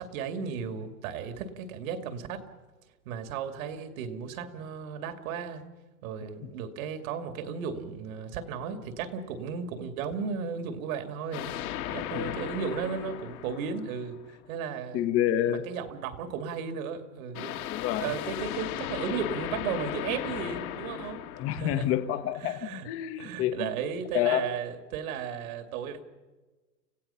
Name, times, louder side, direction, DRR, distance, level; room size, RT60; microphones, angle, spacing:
voice 1, 0.0-2.5 3.1-5.6 6.0-11.5 11.9-14.2 14.5-17.6 18.0-21.2 21.5-21.8 22.4-22.9 23.2-26.0, right 6 dB, 55° right, 8 dB, 2.6 m, -35 dB
sound 1, 11.3-14.4 17.3-22.5, left 12 dB, 60° left, 2.0 m, -37 dB
voice 2, 14.9-15.6 17.7-18.1 21.4-23.8 24.1-24.5, left 11 dB, 30° left, 9 dB, 1.2 m, -28 dB
29.5 x 15.5 x 5.7 m, 1.2 s
hypercardioid pair, 130°, 49 cm